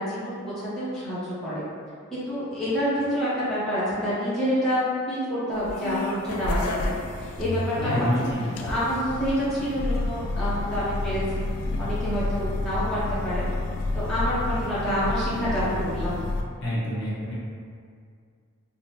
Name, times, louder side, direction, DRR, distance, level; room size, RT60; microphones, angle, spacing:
voice 1, 0.0-1.6 2.1-8.1 8.6-11.2 11.8-13.4 13.9-16.2, equal, ahead, -12 dB, 0.6 m, -27 dB
sound 1, 5.5-16.4, left 2 dB, 80° left, 0.3 m, -30 dB
voice 2, 7.7-8.7 16.6-17.3, equal, 55° left, -7 dB, 0.7 m, -28 dB
3.2 x 2.0 x 2.7 m, 2.2 s
head